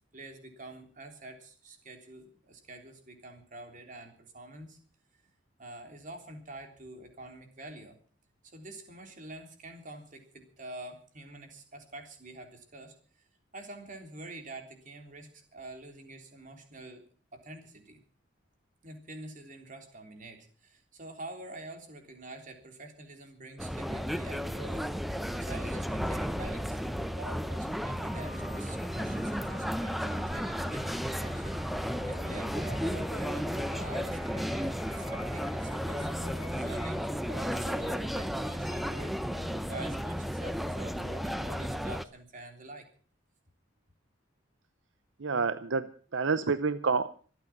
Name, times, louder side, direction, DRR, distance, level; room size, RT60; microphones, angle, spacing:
voice 1, 0.1-4.8 5.6-8.0 8.5-13.0 13.5-17.0 17.3-18.0 18.8-24.9 25.3-42.9, right 2 dB, 40° right, 5 dB, 3.5 m, -47 dB
sound 1, 23.6-42.0, equal, ahead, 0.7 m, -33 dB
sound 2, 28.1-36.9, left 3 dB, 35° left, 5.3 m, -53 dB
Wind instrument woodwind instrument, 32.0-37.5, right 1 dB, 60° right, 2.4 m, -52 dB
voice 2, 45.2-47.1, right 4 dB, 75° right, 13 dB, 0.7 m, -29 dB
25.0 x 9.0 x 5.9 m, 0.42 s
head